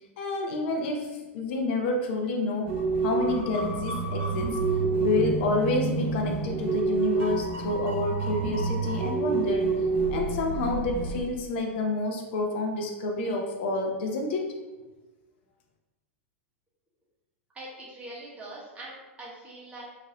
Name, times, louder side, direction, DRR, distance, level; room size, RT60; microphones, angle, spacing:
voice 1, 0.2-2.7 3.0-4.6 5.0-9.7 10.1-14.6, left 2 dB, 55° left, 2 dB, 0.7 m, -29 dB
sound 1, 2.7-11.2, right 4 dB, 60° right, 1.2 m, -28 dB
voice 2, 17.5-19.8, right 1 dB, 15° right, -6 dB, 1.5 m, -43 dB
4.5 x 2.8 x 2.9 m, 1.1 s
figure-of-eight pair, 95°, 7 cm